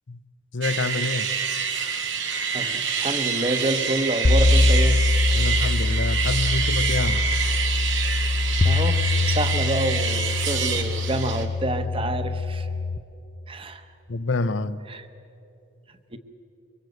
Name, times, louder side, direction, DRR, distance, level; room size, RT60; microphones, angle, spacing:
voice 1, 0.5-1.3 5.3-7.2 14.1-14.8, left 3 dB, 80° left, 0.8 m, -27 dB
sound 1, 0.6-11.4, right 6 dB, 80° right, 2.2 m, -27 dB
voice 2, 2.5-5.0 8.6-12.7 13.5-13.8 14.9-15.1 16.1-16.2, right 2 dB, 30° right, 1.1 m, -28 dB
sound 2, 4.2-13.0, left 2 dB, 30° left, 0.6 m, -23 dB
24.0 x 24.0 x 8.0 m
head